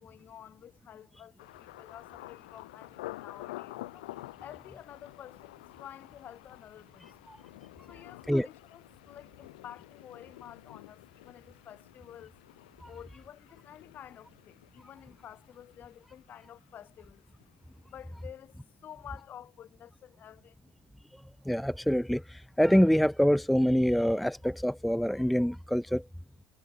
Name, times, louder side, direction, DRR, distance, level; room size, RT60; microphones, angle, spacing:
voice 1, 0.0-4.1 4.4-7.1 7.9-12.3 12.9-17.2 17.9-20.6, left 10 dB, 40° left, 3.7 m, -50 dB
Thunder, 1.4-17.2 17.4-18.0 18.5-18.7, left 18 dB, 85° left, 2.9 m, -49 dB
voice 2, 21.5-26.0, equal, ahead, 0.4 m, -25 dB
supercardioid pair, 105°, 4 cm